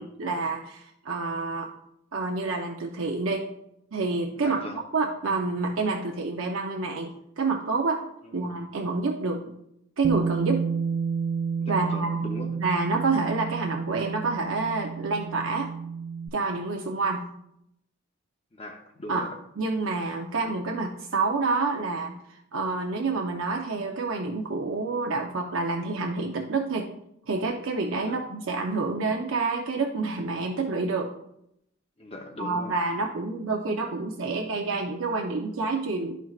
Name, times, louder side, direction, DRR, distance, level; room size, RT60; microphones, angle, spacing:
voice 1, 0.0-1.7 2.1-3.4 3.9-4.6 4.9-8.0 8.3-9.4 10.0-10.6 11.7-12.2 12.6-15.7 16.3-17.2 19.1-19.3 19.6-26.9 27.3-31.1 32.4-36.2, right 3 dB, 80° right, 1 dB, 0.7 m, -28 dB
voice 2, 4.4-4.8 8.2-8.5 11.6-12.5 18.5-19.3 28.0-28.2 32.0-32.8, left 1 dB, 30° left, 3 dB, 0.6 m, -40 dB
Bass guitar, 10.0-16.3, right 5 dB, 45° right, 0.5 m, -30 dB
12.0 x 4.5 x 2.4 m, 0.79 s
head